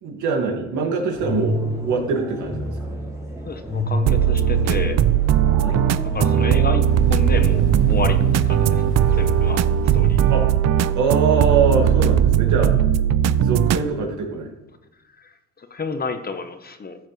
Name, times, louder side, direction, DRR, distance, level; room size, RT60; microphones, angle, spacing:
voice 1, 0.0-2.7 5.6-5.8 10.3-10.4 10.9-12.7 13.4-14.5, right 5 dB, 75° right, 2 dB, 2.1 m, -23 dB
sound 1, 1.1-6.6, equal, 10° right, 2.4 m, -28 dB
voice 2, 3.4-5.0 6.1-6.8 7.1-8.2 8.5-8.8 9.1-9.6 9.8-10.2 15.2-17.0, left 4 dB, 30° left, 8 dB, 1.0 m, -30 dB
sound 2, 4.1-13.8, right 10 dB, 60° right, 0.5 m, -18 dB
sound 3, 6.8-13.8, left 2 dB, 85° left, 2.3 m, -35 dB
14.0 x 7.1 x 3.2 m, 0.99 s
cardioid pair, 90°, 30 cm